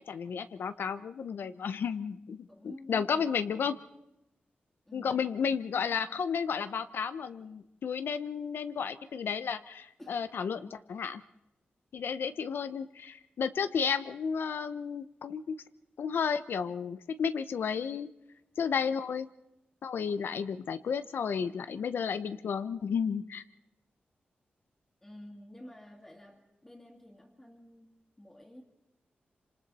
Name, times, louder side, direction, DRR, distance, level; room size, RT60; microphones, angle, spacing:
voice 1, 0.0-3.7 4.9-11.2 11.9-15.6 16.0-18.1 18.6-19.3 19.8-23.4, left 6 dB, 85° left, 12 dB, 0.8 m, -32 dB
voice 2, 2.5-3.8 4.9-5.5 10.0-10.2 25.0-28.6, left 1 dB, 10° left, -4 dB, 2.5 m, -51 dB
28.0 x 26.5 x 4.2 m, 0.88 s
wide cardioid pair, 180°, 4 cm